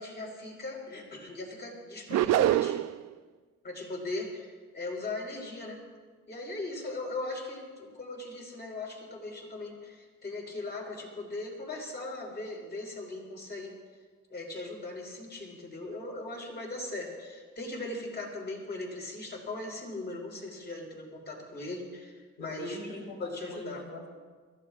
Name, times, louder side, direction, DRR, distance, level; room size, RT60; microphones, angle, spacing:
voice 1, 0.0-2.9 3.6-5.8 6.3-13.7 14.3-22.9 23.2-23.8, left 2 dB, 35° left, -1 dB, 4.7 m, -39 dB
sound 1, 2.1-3.0, right 12 dB, 60° right, 0.5 m, -24 dB
voice 2, 22.4-24.1, left 2 dB, 80° left, -3 dB, 4.0 m, -42 dB
29.0 x 15.0 x 2.5 m, 1.5 s
cardioid pair, 90°, 30 cm